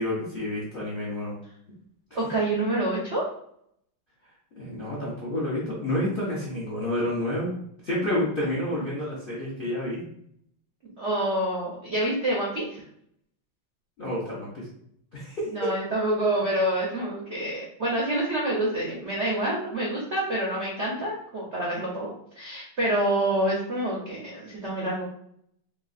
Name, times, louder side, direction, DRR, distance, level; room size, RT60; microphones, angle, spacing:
voice 1, 0.0-1.3 4.6-7.5 7.8-10.0 14.0-14.7 15.1-15.7, left 1 dB, 55° left, -5 dB, 0.5 m, -29 dB
voice 2, 2.1-3.3 11.0-12.8 15.5-25.0, right 1 dB, 70° right, -5 dB, 0.6 m, -27 dB
3.7 x 3.0 x 2.4 m, 0.70 s
omnidirectional pair, 2.3 m